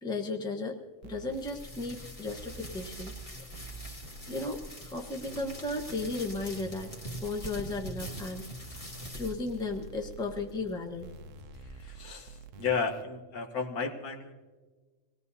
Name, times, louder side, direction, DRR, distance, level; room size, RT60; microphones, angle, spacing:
voice 1, 0.0-0.8 1.0-3.1 4.3-6.9 7.2-8.4 9.1-11.1, left 2 dB, 5° left, 1 dB, 0.9 m, -35 dB
sound 1, 1.0-1.4 2.3-3.2 3.5-4.5 5.3-7.4 8.0-9.1 9.5-10.5 11.0-13.0, right 6 dB, 60° right, 0.9 m, -48 dB
sound 2, 1.3-12.3, equal, 20° left, 1.7 m, -45 dB
voice 2, 11.6-14.3, left 5 dB, 70° left, 2 dB, 1.8 m, -34 dB
26.0 x 19.0 x 2.8 m, 1.4 s
omnidirectional pair, 1.6 m